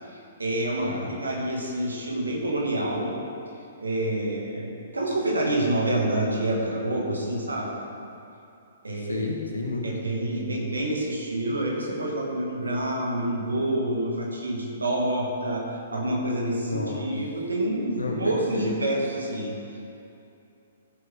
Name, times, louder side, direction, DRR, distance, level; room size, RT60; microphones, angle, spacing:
voice 1, 0.0-3.1 3.8-7.7 8.8-9.3 9.8-19.5, right 1 dB, 75° right, -2 dB, 2.4 m, -27 dB
voice 2, 8.9-9.9 16.7-17.1 18.0-18.7, left 3 dB, 80° left, 0 dB, 1.8 m, -31 dB
15.0 x 7.7 x 3.9 m, 2.7 s
figure-of-eight pair, 120°, 0 cm